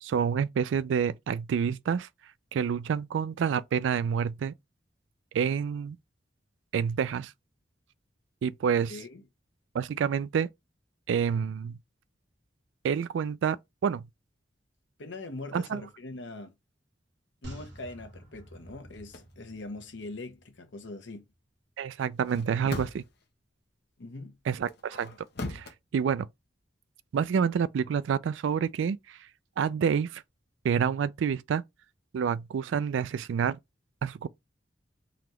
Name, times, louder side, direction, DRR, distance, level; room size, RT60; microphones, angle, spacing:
voice 1, 0.0-2.1 2.5-4.5 5.3-6.0 6.7-7.3 8.4-8.9 9.7-10.5 11.1-11.8 12.8-13.6 13.8-14.0 15.5-15.8 21.8-23.0 24.5-25.1 25.5-26.3 27.1-29.2 29.6-30.2 30.6-31.6 32.1-33.6 34.0-34.3, right 7 dB, 85° right, 0.3 m, -28 dB
voice 2, 8.9-9.2 15.0-16.5 17.4-21.2 24.0-24.3, left 2 dB, 80° left, 0.9 m, -42 dB
sound 1, 17.4-20.9 21.2-21.3, right 1 dB, 65° right, 1.8 m, -49 dB
sound 2, 18.9-19.3 22.1-23.2 24.6-25.7, left 2 dB, 60° left, 0.9 m, -39 dB
4.0 x 2.8 x 3.1 m
head